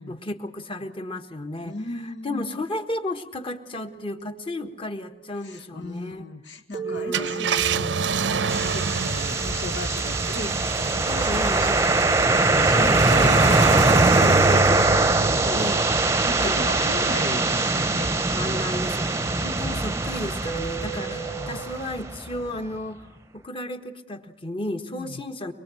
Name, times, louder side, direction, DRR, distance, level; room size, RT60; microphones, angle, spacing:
voice 1, 0.1-1.7 2.2-6.3 6.8-8.0 11.1-11.9 12.7-13.0 13.4-13.6 14.2-14.4 15.5-15.9 16.4-16.6 18.1-23.1 23.3-25.5, left 1 dB, 30° left, 7 dB, 1.4 m, -33 dB
voice 2, 1.6-2.6 5.4-8.2 8.6-15.9 16.2-18.7 19.2-19.9 21.0-21.6 24.9-25.2, left 2 dB, 85° left, 7 dB, 1.6 m, -36 dB
sound 1, 3.7-5.3 6.7-12.2 13.6-19.0 20.4-21.7, right 6 dB, 65° left, 3.4 m, -39 dB
Car, 7.0-17.8 18.3-18.4 20.4-20.7, right 5 dB, 90° right, 0.8 m, -29 dB
sound 2, 8.5-22.4, right 2 dB, 15° right, 0.8 m, -22 dB
24.0 x 22.0 x 7.7 m, 0.97 s
head